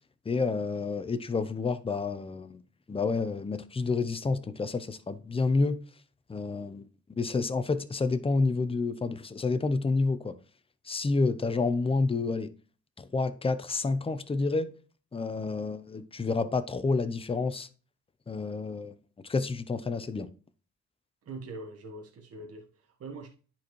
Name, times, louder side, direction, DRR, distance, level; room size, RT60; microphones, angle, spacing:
voice 1, 0.3-2.6 2.9-5.8 6.3-10.4 10.9-12.5 13.0-14.7 15.1-17.7 18.3-19.0 19.2-20.3, left 3 dB, 20° left, 0.7 m, -29 dB
voice 2, 21.2-23.3, right 3 dB, 50° right, 1.4 m, -43 dB
10.0 x 4.3 x 3.1 m
cardioid pair, 90°, 30 cm